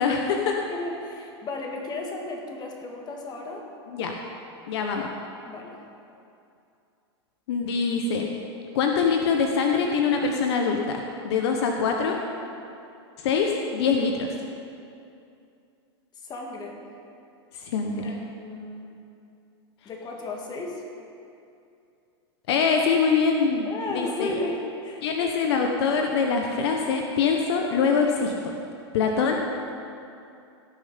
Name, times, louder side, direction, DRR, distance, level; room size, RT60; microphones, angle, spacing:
voice 1, 0.0-0.5 3.9-4.1 4.7-5.1 7.5-8.3 8.7-12.1 13.2-14.3 17.6-18.1 22.5-24.3 25.0-28.3 28.9-29.4, left 5 dB, 70° left, 2 dB, 1.1 m, -24 dB
voice 2, 0.7-3.7 5.4-5.8 16.2-16.8 18.0-18.9 19.9-20.8 23.6-25.1, left 2 dB, 30° left, 1 dB, 2.1 m, -34 dB
17.5 x 6.7 x 5.2 m, 2.6 s
hypercardioid pair, 115°, 14 cm